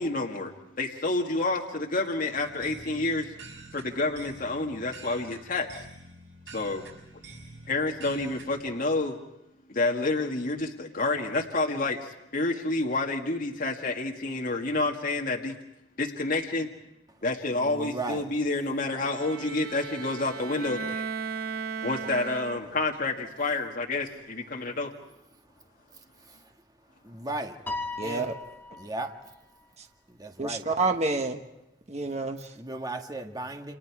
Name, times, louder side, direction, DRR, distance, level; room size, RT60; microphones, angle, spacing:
voice 1, 0.0-3.3 3.7-5.8 6.5-6.8 7.7-9.2 9.7-15.6 16.0-16.7 17.2-21.3 21.8-24.9, left 2 dB, 50° left, 0 dB, 1.9 m, -29 dB
sound 1, 2.3-8.8, right 3 dB, 75° right, 6.2 m, -47 dB
voice 2, 17.5-18.3 26.3-26.4 27.0-27.6 28.0-28.3 28.8-29.3 30.1-30.6 32.6-33.7, right 2 dB, 20° right, 4 dB, 1.7 m, -36 dB
Bowed string instrument, 18.8-23.0, right 5 dB, 55° right, 1.5 m, -36 dB
Piano, 27.7-29.2, left 3 dB, 10° left, 3.3 m, -36 dB
voice 3, 28.0-28.3 29.8-29.9 30.4-31.4 31.9-32.5, right 3 dB, 40° right, 5 dB, 1.2 m, -28 dB
30.0 x 27.5 x 4.8 m, 0.88 s
head